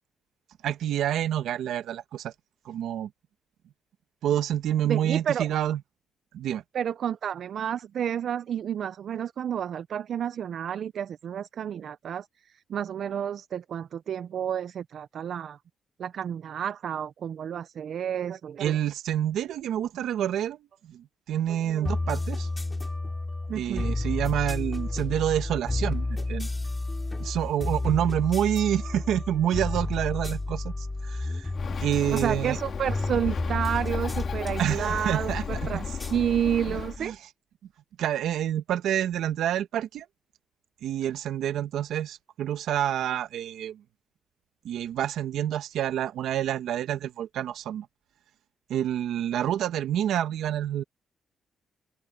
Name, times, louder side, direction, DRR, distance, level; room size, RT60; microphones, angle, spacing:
voice 1, 0.6-2.3 2.6-3.1 4.2-5.8 6.3-6.6 18.6-20.6 20.8-22.5 23.5-26.5 27.2-31.5 31.8-32.6 34.6-35.9 36.7-37.2 38.0-40.1 40.8-43.8 44.6-47.9 48.7-50.8, right 11 dB, 80° right, 1.1 m, -28 dB
voice 2, 4.8-5.5 6.7-12.3 12.7-15.6 16.0-18.8 21.7-21.9 23.5-23.9 32.1-37.1, right 9 dB, 60° right, 0.5 m, -30 dB
sound 1, 21.8-37.1, left 2 dB, 20° left, 3.0 m, -32 dB
Bird, 31.5-37.0, left 7 dB, 50° left, 2.8 m, -34 dB
open air
cardioid pair, 90°, 0 cm